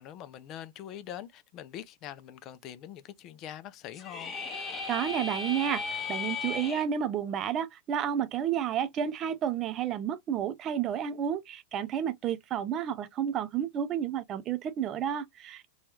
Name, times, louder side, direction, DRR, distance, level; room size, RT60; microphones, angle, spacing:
voice 1, 0.0-4.3, left 11 dB, 40° left, 0.4 m, -43 dB
sound 1, 3.9-6.8, left 4 dB, 25° left, 0.9 m, -35 dB
voice 2, 4.9-15.7, right 9 dB, 35° right, 0.5 m, -31 dB
2.9 x 2.3 x 3.0 m
hypercardioid pair, 100°, 0 cm